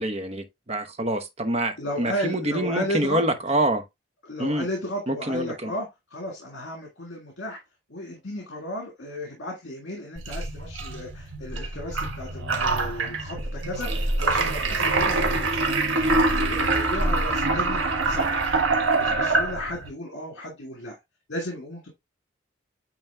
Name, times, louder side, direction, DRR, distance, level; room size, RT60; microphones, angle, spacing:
voice 1, 0.0-3.8 4.4-4.7 5.1-5.7, right 1 dB, 30° right, 0.9 m, -26 dB
voice 2, 1.8-3.2 4.3-7.6 7.9-18.4 19.0-21.0 21.3-21.9, left 1 dB, 70° left, 1.8 m, -34 dB
sound 1, 10.2-19.9, right 3 dB, 90° right, 1.5 m, -25 dB
9.0 x 3.1 x 3.4 m
head